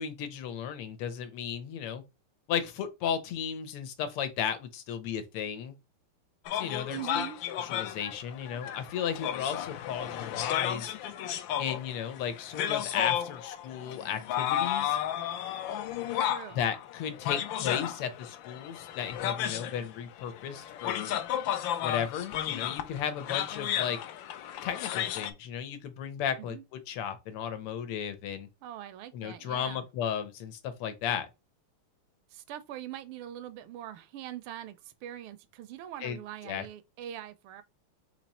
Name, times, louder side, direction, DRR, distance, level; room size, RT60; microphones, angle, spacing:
voice 1, 0.0-2.0 2.5-5.8 6.5-7.2 7.5-10.9 11.6-15.0 16.6-21.1 21.8-24.0 24.6-28.5 29.1-31.3 36.0-36.2 36.5-36.7, left 8 dB, 90° left, 1.8 m, -34 dB
sound 1, 6.5-25.3, left 11 dB, 75° left, 1.2 m, -33 dB
voice 2, 6.9-7.4 16.2-16.6 26.4-26.6 28.6-29.8 32.3-37.6, right 11 dB, 80° right, 1.4 m, -42 dB
4.2 x 3.0 x 4.0 m
omnidirectional pair, 2.4 m